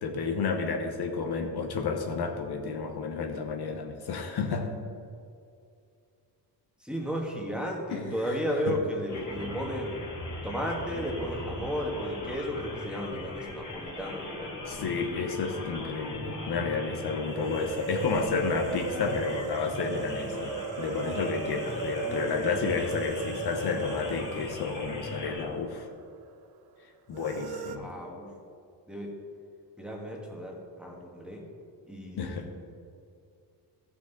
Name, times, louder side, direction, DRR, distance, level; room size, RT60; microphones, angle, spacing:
voice 1, 0.0-4.8 7.9-8.8 14.6-25.9 27.1-28.0 32.2-32.5, left 5 dB, 60° left, 4 dB, 1.1 m, -31 dB
voice 2, 6.8-10.0 10.4-14.5 22.0-22.6 27.7-28.3 28.9-29.1 29.8-31.5 31.9-32.5, equal, ahead, -2 dB, 1.4 m, -34 dB
sound 1, 9.1-25.4, left 2 dB, 45° left, 1.8 m, -39 dB
sound 2, 17.3-26.1 26.4-26.5 27.1-27.8, right 6 dB, 55° right, 0.7 m, -38 dB
14.5 x 5.8 x 4.0 m, 2.4 s
cardioid pair, 125°, 43 cm